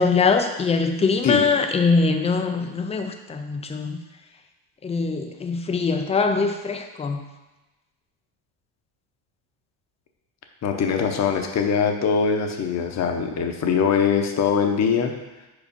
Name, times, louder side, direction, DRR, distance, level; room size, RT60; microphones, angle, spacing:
voice 1, 0.0-4.0 4.8-7.2, left 4 dB, 15° left, 6 dB, 0.3 m, -22 dB
voice 2, 10.6-15.1, left 6 dB, 35° left, 4 dB, 0.8 m, -22 dB
5.0 x 4.5 x 5.3 m, 1.1 s
cardioid pair, 130°, 44 cm